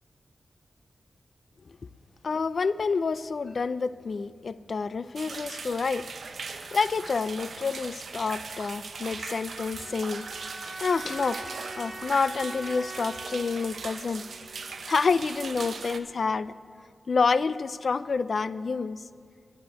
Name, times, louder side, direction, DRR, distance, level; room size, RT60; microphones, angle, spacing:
voice 1, 2.2-6.1 6.7-10.3 10.8-14.3 14.9-16.5 17.1-19.0, left 4 dB, 55° left, 16 dB, 0.3 m, -28 dB
sound 1, 5.2-16.0, right 5 dB, 75° right, 0.6 m, -40 dB
sound 2, 9.7-14.8, right 1 dB, 45° right, 2.4 m, -42 dB
sound 3, 10.5-11.9 12.3-12.4 12.6-13.7 14.3-14.4 14.7-14.9, left 2 dB, 35° left, 0.9 m, -54 dB
10.5 x 8.1 x 9.2 m, 2.2 s
wide cardioid pair, 145°, 0 cm